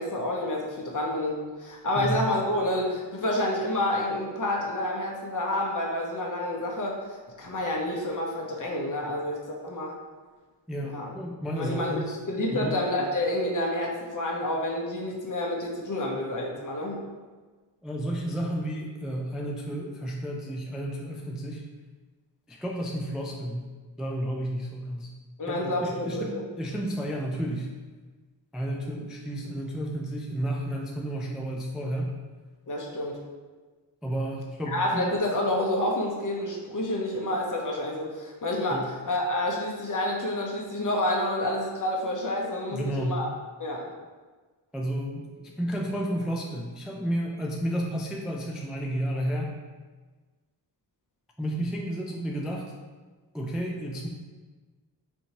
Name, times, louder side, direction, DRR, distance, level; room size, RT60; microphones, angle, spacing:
voice 1, 0.0-9.9 10.8-11.1 11.6-17.0 25.4-26.4 32.7-33.2 34.7-43.3 43.6-43.8, left 1 dB, 45° left, -1 dB, 0.8 m, -29 dB
voice 2, 10.7-12.2 12.5-12.8 17.8-21.6 22.5-23.7 24.0-25.1 25.5-27.7 28.5-32.1 34.0-35.1 38.7-38.8 42.7-43.2 44.7-49.5 51.4-52.7 53.3-54.1, right 1 dB, ahead, -1 dB, 0.3 m, -31 dB
4.3 x 2.7 x 2.9 m, 1.3 s
wide cardioid pair, 75°, 44 cm